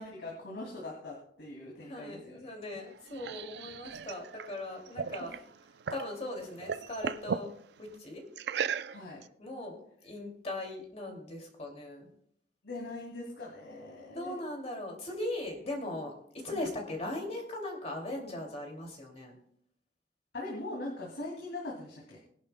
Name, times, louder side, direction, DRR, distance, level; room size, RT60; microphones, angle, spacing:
voice 1, 0.0-2.5 5.2-5.4 8.9-9.2 12.6-14.4 16.5-16.7 20.3-22.2, left 2 dB, 70° left, -3 dB, 2.6 m, -41 dB
voice 2, 1.8-5.3 5.9-7.5 7.8-8.2 9.4-9.8 10.0-12.1 14.1-19.3, left 1 dB, 35° left, 1 dB, 2.5 m, -39 dB
sound 1, 2.7-6.1 6.4-7.5 8.4-9.2, right 6 dB, 65° right, 0.4 m, -36 dB
21.5 x 11.0 x 2.2 m, 0.67 s
head